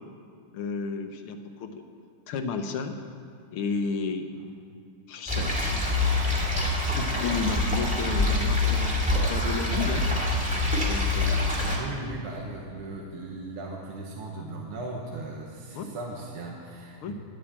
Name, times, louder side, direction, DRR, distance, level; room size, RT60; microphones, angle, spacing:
voice 1, 0.5-1.8 2.3-3.0 3.5-4.3 5.1-6.1 6.5-10.1 10.9-11.6 11.8-11.9 15.7-15.9 17.0-17.1, left 5 dB, 75° left, 7 dB, 1.8 m, -32 dB
sound 1, 5.3-11.8, left 2 dB, 5° right, 2.0 m, -25 dB
voice 2, 11.5-17.1, right 2 dB, 85° right, -1 dB, 2.3 m, -37 dB
11.5 x 8.6 x 8.8 m, 2.6 s
omnidirectional pair, 2.4 m